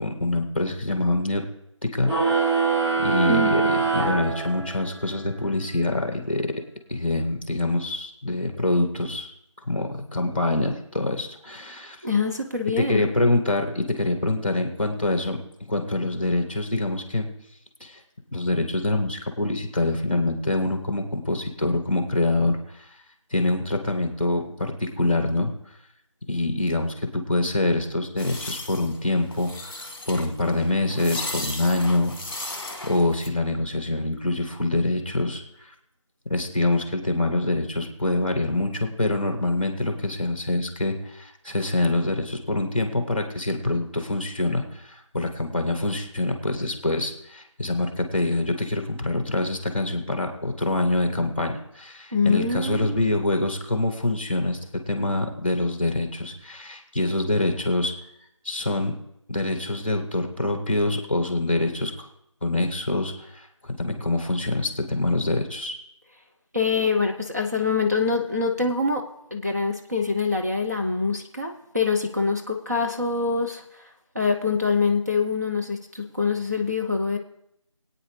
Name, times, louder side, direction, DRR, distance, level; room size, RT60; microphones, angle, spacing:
voice 1, 0.0-1.4 1.8-2.5 3.0-6.5 6.9-9.3 9.7-12.0 12.8-15.4 15.7-17.3 17.8-18.0 18.3-22.9 23.3-25.5 26.3-32.1 32.4-35.7 36.3-54.6 54.9-57.9 58.4-58.9 59.3-62.1 62.4-65.7, left 2 dB, 20° left, 5 dB, 1.3 m, -25 dB
sound 1, 2.0-5.0, right 4 dB, 55° right, 3.3 m, -23 dB
voice 2, 3.3-3.7 12.0-13.1 52.1-53.0 66.5-69.0 69.3-73.8 74.1-77.2, left 4 dB, 30° right, 0 dB, 0.7 m, -25 dB
sound 2, 28.2-33.3, left 1 dB, 45° left, 1.3 m, -36 dB
22.5 x 9.0 x 3.3 m, 0.79 s
figure-of-eight pair, 175°, 17 cm